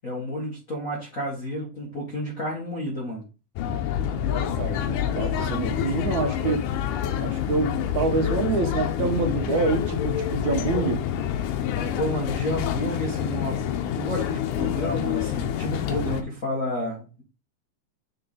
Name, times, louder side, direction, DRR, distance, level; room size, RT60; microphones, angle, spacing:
voice 1, 0.0-3.2 5.6-5.9 9.0-9.3 11.9-17.2, left 1 dB, 40° left, 1.3 m, -31 dB
sound 1, 3.6-16.2, left 9 dB, 90° left, 2.4 m, -27 dB
voice 2, 4.3-6.7 7.2-11.0, right 4 dB, 70° right, 2.2 m, -27 dB
6.9 x 3.8 x 4.8 m
omnidirectional pair, 3.6 m